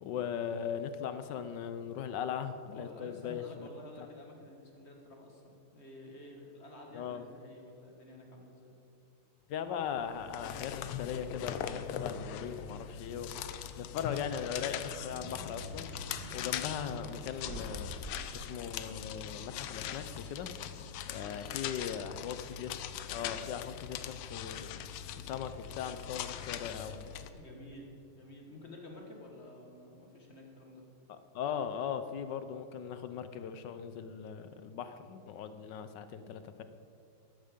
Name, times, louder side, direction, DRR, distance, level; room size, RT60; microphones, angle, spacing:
voice 1, 0.0-3.7 6.9-7.2 9.5-13.3 13.7-15.9 16.3-17.9 18.3-20.5 21.1-22.8 23.1-24.8 25.2-27.0 31.1-36.6, left 8 dB, 70° left, 10 dB, 1.1 m, -39 dB
voice 2, 2.7-8.7 21.1-21.6 27.3-30.8, left 1 dB, 30° left, 1 dB, 1.7 m, -51 dB
sound 1, 10.0-27.3, left 9 dB, 90° left, 1.6 m, -41 dB
sound 2, 14.5-23.2, equal, 85° right, 3.1 m, -49 dB
14.0 x 11.5 x 5.2 m, 2.6 s
omnidirectional pair, 2.4 m